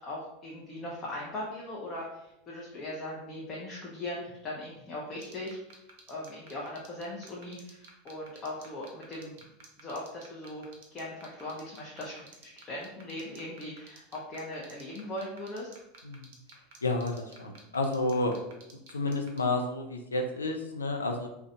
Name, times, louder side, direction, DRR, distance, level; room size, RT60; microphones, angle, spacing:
voice 1, 0.0-5.6 6.1-9.3 9.8-15.7, left 1 dB, 30° left, -4 dB, 0.6 m, -39 dB
sound 1, 5.2-19.4, right 5 dB, 60° right, 0.5 m, -51 dB
voice 2, 16.8-18.3 18.9-21.3, left 2 dB, 80° left, 4 dB, 0.3 m, -30 dB
2.4 x 2.1 x 2.6 m, 0.84 s
figure-of-eight pair, 80°, 0 cm